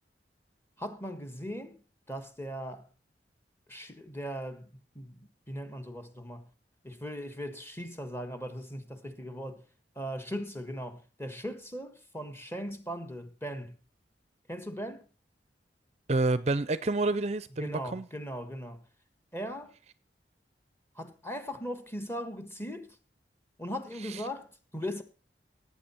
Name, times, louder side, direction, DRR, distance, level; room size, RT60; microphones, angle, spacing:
voice 1, 0.8-1.8 2.1-2.9 3.7-4.7 4.9-6.4 6.8-9.6 9.9-13.8 14.5-15.1 17.6-18.8 19.3-19.7 20.9-23.0 23.6-25.0, equal, 15° left, 1.5 m, -39 dB
voice 2, 16.1-18.1 24.0-24.2, right 2 dB, 40° right, 0.5 m, -29 dB
17.5 x 8.5 x 4.4 m
head